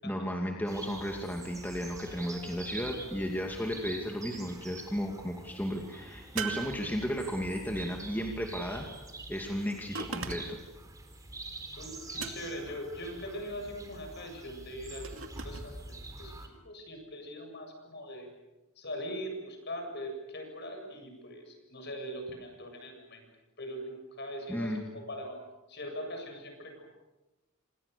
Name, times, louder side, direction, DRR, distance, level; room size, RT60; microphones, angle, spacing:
voice 1, 0.0-8.9 9.3-10.6 24.5-24.8, equal, 10° left, 1 dB, 2.5 m, -34 dB
sound 1, 0.7-16.5, right 2 dB, 15° right, 3.7 m, -46 dB
sound 2, 6.4-7.5 9.9-10.7 12.2-12.8 15.0-15.7, right 6 dB, 70° right, 2.4 m, -39 dB
voice 2, 11.8-15.8 16.2-16.3 16.6-18.3 18.8-23.2 23.6-24.7 25.1-25.3 25.7-26.8, equal, 50° left, 4 dB, 7.5 m, -41 dB
29.5 x 26.5 x 6.9 m, 1.1 s
head